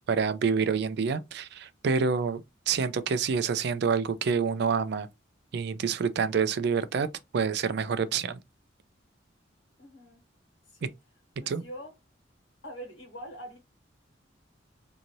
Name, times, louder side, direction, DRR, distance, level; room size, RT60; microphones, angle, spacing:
voice 1, 0.1-5.1 5.5-7.1 7.3-8.4 11.5-11.6, right 5 dB, 60° right, 0.4 m, -27 dB
voice 2, 9.8-10.2 10.7-10.9 11.4-11.9 12.6-13.6, equal, 85° left, 1.3 m, -43 dB
2.7 x 2.5 x 3.0 m
head